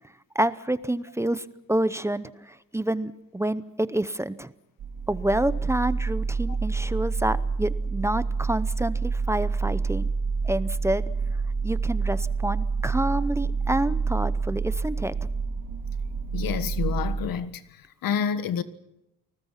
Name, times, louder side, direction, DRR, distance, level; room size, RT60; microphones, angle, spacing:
voice 1, 0.3-4.5 5.1-10.1 10.4-11.1 11.6-15.1, right 1 dB, 10° right, 0.7 m, -28 dB
sound 1, 4.8-17.3, right 4 dB, 65° right, 2.4 m, -28 dB
voice 2, 16.3-17.6 18.0-18.6, left 8 dB, 90° left, 1.5 m, -28 dB
29.0 x 20.0 x 5.8 m
cardioid pair, 135°, 34 cm